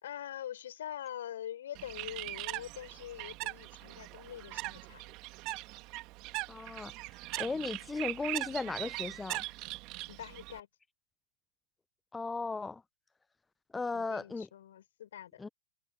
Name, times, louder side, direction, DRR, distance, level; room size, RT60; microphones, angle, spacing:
voice 1, 0.0-5.2 10.1-10.7 13.9-15.4, left 11 dB, 70° left, 4.4 m, -44 dB
Bird, 1.7-10.6, right 22 dB, 45° right, 2.1 m, -41 dB
voice 2, 6.5-6.9 7.4-9.5 12.1-12.8 13.7-14.5 15.4-15.5, left 3 dB, 10° left, 0.5 m, -36 dB
hypercardioid pair, 110°, 0 cm